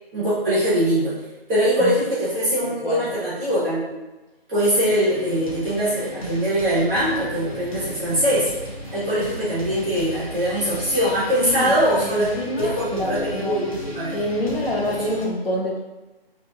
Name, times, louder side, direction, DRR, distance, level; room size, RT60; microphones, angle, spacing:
voice 1, 0.1-1.2 1.5-4.1 4.5-8.5 8.9-12.3 12.6-14.2 14.9-15.1, equal, 10° right, -10 dB, 1.0 m, -22 dB
voice 2, 2.6-3.1 11.4-11.7 12.0-13.6 14.1-15.8, left 1 dB, 70° left, -3 dB, 1.1 m, -26 dB
sound 1, 4.9-15.3, equal, 35° left, 0.7 m, -36 dB
2.8 x 2.6 x 3.6 m, 1.1 s
figure-of-eight pair, 150°, 30 cm